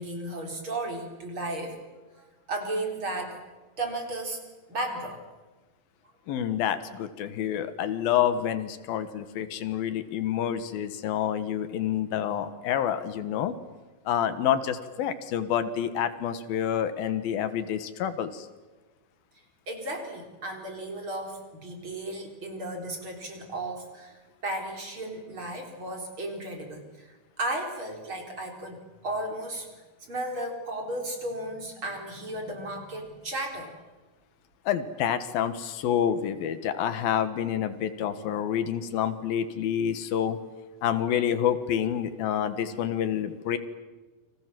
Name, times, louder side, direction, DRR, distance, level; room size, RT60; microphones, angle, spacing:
voice 1, 0.0-1.8 2.2-3.4 3.8-4.4 4.7-5.2 19.7-24.2 24.4-29.7 30.0-33.7, right 1 dB, 35° right, 3 dB, 4.7 m, -34 dB
voice 2, 6.3-13.5 14.1-18.5 34.7-40.4 40.8-43.6, left 9 dB, 80° left, 11 dB, 3.2 m, -28 dB
29.5 x 24.5 x 7.7 m, 1.2 s
omnidirectional pair, 4.2 m